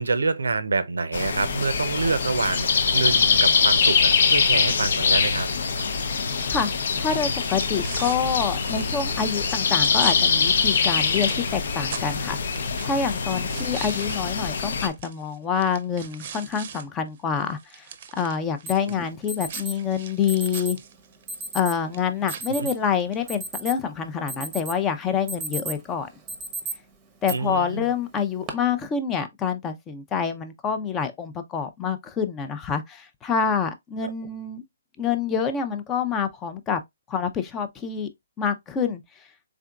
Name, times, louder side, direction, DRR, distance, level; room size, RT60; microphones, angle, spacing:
voice 1, 0.0-5.5 13.5-13.7 18.8-19.0 22.6-22.7 27.3-27.9 34.0-34.1, right 3 dB, 85° right, 0.6 m, -27 dB
sound 1, 1.1-14.9, left 5 dB, 60° left, 0.6 m, -23 dB
voice 2, 6.5-17.9 18.1-20.8 21.5-26.1 27.2-34.6 35.0-36.8 37.1-38.1 38.4-39.0, left 6 dB, 15° left, 0.5 m, -27 dB
sound 2, 6.6-16.8 17.2-23.2, right 8 dB, 45° right, 0.6 m, -42 dB
Alarm, 18.7-18.8 19.3-19.7 20.3-20.8 21.3-21.8 22.3-22.7 23.1-23.9 24.3-24.8 25.1-25.8 26.3-26.7 27.3-27.4 28.1-28.5, right 2 dB, 15° right, 0.8 m, -33 dB
3.7 x 3.4 x 2.3 m
hypercardioid pair, 150°, 0 cm